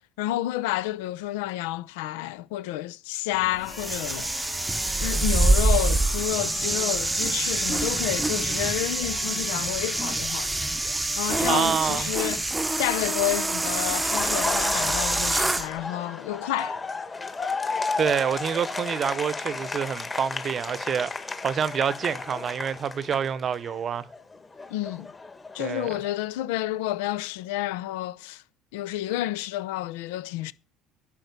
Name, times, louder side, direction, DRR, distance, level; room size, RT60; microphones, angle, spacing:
voice 1, 0.2-4.5 5.0-10.6 11.2-12.5 12.8-16.8 24.7-25.1 25.5-28.4 28.7-30.5, left 15 dB, 85° left, 0.6 m, -30 dB
sound 1, 3.3-14.2, left 8 dB, 50° left, 1.6 m, -43 dB
sound 2, 3.7-15.7, right 2 dB, 10° right, 0.7 m, -26 dB
voice 2, 11.5-12.1 18.0-24.1 25.6-26.0, right 7 dB, 40° right, 0.8 m, -27 dB
Laughter, 13.9-23.8 24.1-26.1, left 4 dB, 20° left, 1.4 m, -33 dB
10.5 x 5.9 x 6.8 m
supercardioid pair, 90°, 0 cm